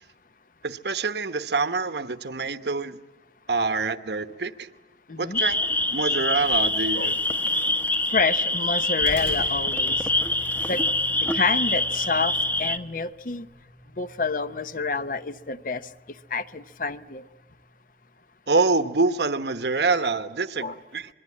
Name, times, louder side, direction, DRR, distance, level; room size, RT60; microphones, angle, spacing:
voice 1, 0.6-3.0 3.5-4.7 5.2-7.1 18.5-21.1, right 3 dB, 70° right, 1.0 m, -26 dB
voice 2, 5.1-5.4 6.9-7.1 8.1-10.1 10.7-10.8 11.3-13.5 14.0-15.8 16.3-17.2 20.6-20.8, left 4 dB, 50° left, 0.7 m, -28 dB
sound 1, 5.3-12.8, left 2 dB, 10° left, 0.9 m, -25 dB
sound 2, 9.0-17.7, left 1 dB, 80° left, 8.0 m, -44 dB
26.5 x 22.5 x 8.5 m
head